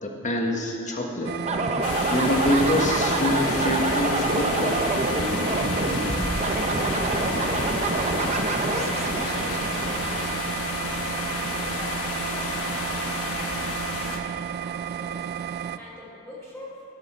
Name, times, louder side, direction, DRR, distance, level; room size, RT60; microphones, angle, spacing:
voice 1, 0.0-1.3 1.8-4.8, left 1 dB, 35° left, 1 dB, 1.4 m, -25 dB
sound 1, 1.2-15.8, right 8 dB, 45° right, 0.3 m, -32 dB
sound 2, 1.4-11.0, right 2 dB, 30° right, 0.7 m, -27 dB
sound 3, 1.8-14.2, left 3 dB, 70° left, 1.1 m, -31 dB
voice 2, 7.3-16.7, left 1 dB, ahead, -13 dB, 2.3 m, -42 dB
18.5 x 6.7 x 4.4 m, 2.6 s
head